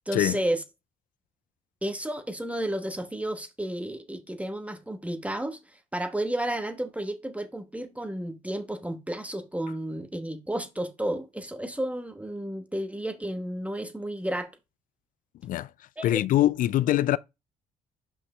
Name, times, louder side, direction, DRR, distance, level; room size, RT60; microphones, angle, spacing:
voice 1, 0.1-0.6 1.8-5.6 5.9-14.5 16.0-16.1, right 1 dB, 10° right, 1.2 m, -32 dB
voice 2, 16.0-17.2, left 13 dB, 60° left, 0.4 m, -23 dB
5.4 x 5.4 x 3.2 m
supercardioid pair, 55°, 16 cm